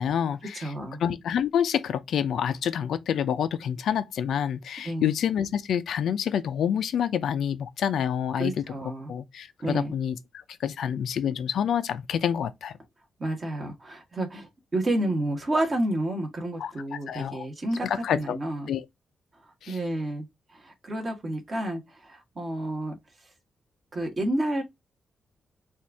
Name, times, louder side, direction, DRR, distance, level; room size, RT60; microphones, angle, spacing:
voice 1, 0.0-0.7 1.0-8.6 9.1-10.1 10.6-12.7 16.6-16.7 17.1-17.4 17.8-18.4 18.7-18.8 19.6-19.8, left 8 dB, 80° left, 0.6 m, -27 dB
voice 2, 0.5-1.0 4.8-5.1 8.4-9.1 9.6-9.9 13.2-18.7 19.7-20.3 20.5-23.0 23.9-24.6, right 1 dB, 30° right, 1.5 m, -30 dB
4.3 x 2.6 x 4.6 m
wide cardioid pair, 140°, 0 cm